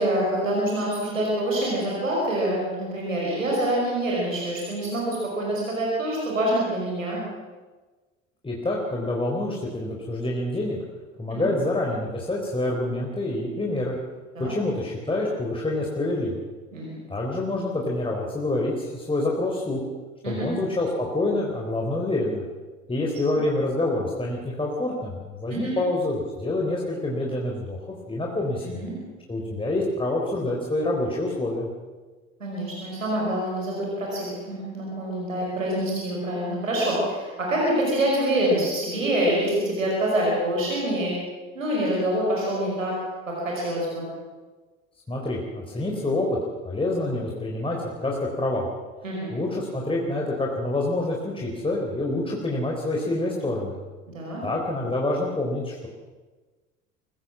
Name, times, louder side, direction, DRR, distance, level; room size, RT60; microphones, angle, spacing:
voice 1, 0.0-7.2 11.3-11.5 14.4-14.5 16.7-17.0 20.2-20.5 25.5-25.7 28.6-29.0 32.4-41.1 41.5-42.9 43.3-44.1 49.0-49.3 54.1-54.4, right 1 dB, 85° right, -3 dB, 5.4 m, -26 dB
voice 2, 8.4-10.8 11.2-13.9 14.4-16.4 17.1-19.8 20.2-22.4 22.9-27.8 28.1-28.8 29.3-31.7 45.1-46.4 46.6-48.7 49.3-53.7 54.4-55.9, left 2 dB, 15° left, -2 dB, 4.1 m, -27 dB
23.5 x 15.5 x 7.4 m, 1.3 s
figure-of-eight pair, 65°, 38 cm